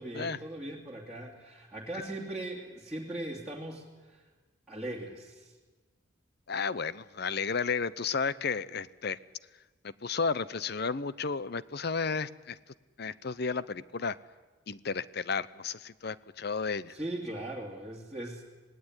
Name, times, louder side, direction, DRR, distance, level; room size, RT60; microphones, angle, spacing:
voice 1, 0.0-4.2 4.7-5.5 16.9-18.4, right 1 dB, 5° right, -6 dB, 2.7 m, -39 dB
voice 2, 6.5-9.2 9.8-12.6 13.0-14.2 14.7-16.9, left 5 dB, 55° left, 17 dB, 0.7 m, -33 dB
26.0 x 18.5 x 9.8 m, 1.3 s
head